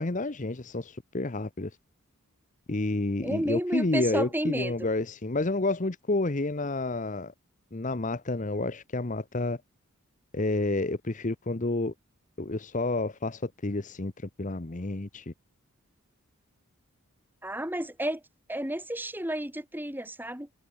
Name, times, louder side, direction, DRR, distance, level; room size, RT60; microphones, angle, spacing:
voice 1, 0.0-1.7 2.7-7.3 7.7-9.6 10.3-11.9 12.4-14.1 14.4-15.3, left 2 dB, 35° left, 0.9 m, -30 dB
voice 2, 3.2-4.7 17.4-18.2 18.5-20.5, right 1 dB, 10° right, 3.8 m, -31 dB
head